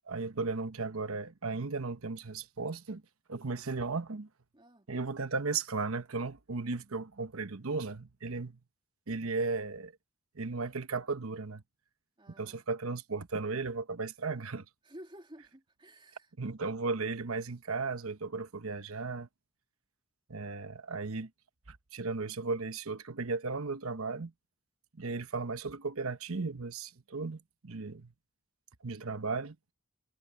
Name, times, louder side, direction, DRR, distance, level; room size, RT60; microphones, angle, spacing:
voice 1, 0.1-3.0 3.3-4.3 4.9-8.6 9.1-9.9 10.3-11.6 12.4-14.7 16.4-19.3 20.3-21.3 21.7-24.3 24.9-28.1 28.8-29.6, right 4 dB, 75° right, 1.1 m, -35 dB
voice 2, 4.5-4.9 12.2-12.6 14.8-16.3, equal, 25° right, 2.8 m, -52 dB
head